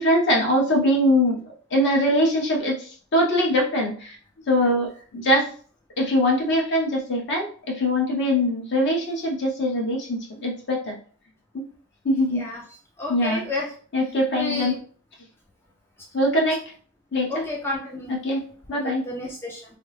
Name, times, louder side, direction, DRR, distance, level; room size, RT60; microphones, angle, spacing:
voice 1, 0.0-1.4 1.7-2.7 3.1-4.1 4.5-5.5 6.0-7.5 7.8-10.9 11.5-11.6 12.0-12.4 13.1-13.4 13.9-14.7 16.1-16.6 17.1-17.4 18.1-18.4 18.7-19.0, equal, 55° left, -1 dB, 1.0 m, -22 dB
voice 2, 12.3-12.6 13.0-13.7 14.3-14.8 17.3-18.1 18.8-19.6, left 1 dB, 10° left, -2 dB, 0.4 m, -31 dB
3.3 x 2.0 x 3.1 m, 0.44 s
head